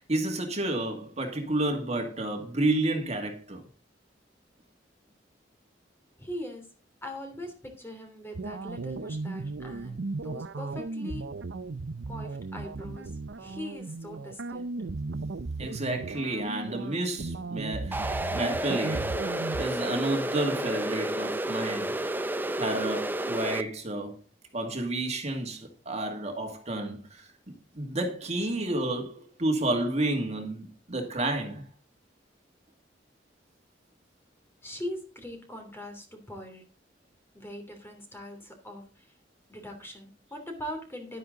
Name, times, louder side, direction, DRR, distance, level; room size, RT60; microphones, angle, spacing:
voice 1, 0.0-3.6 15.6-19.1 19.6-21.9 22.6-24.2 24.5-27.3 27.7-31.6, right 2 dB, 40° right, 2.3 m, -30 dB
voice 2, 6.2-6.7 7.0-11.3 12.1-13.1 13.4-14.7 34.6-36.6 37.3-39.1 39.5-41.2, left 1 dB, 15° left, 2.9 m, -41 dB
sound 1, 8.3-19.6, right 3 dB, 90° right, 0.7 m, -36 dB
sound 2, 17.9-23.6, right 1 dB, 10° right, 0.6 m, -31 dB
11.5 x 10.5 x 3.9 m
head